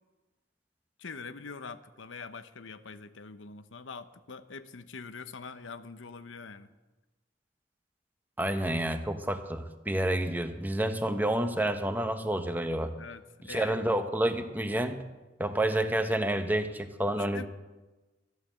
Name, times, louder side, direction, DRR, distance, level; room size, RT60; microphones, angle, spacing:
voice 1, 1.0-6.7 13.0-13.8 17.2-17.5, left 4 dB, 85° left, 12 dB, 0.8 m, -44 dB
voice 2, 8.4-12.9 13.5-15.0 15.4-17.5, right 1 dB, 10° right, 8 dB, 0.9 m, -29 dB
13.5 x 11.5 x 7.6 m, 1.2 s
head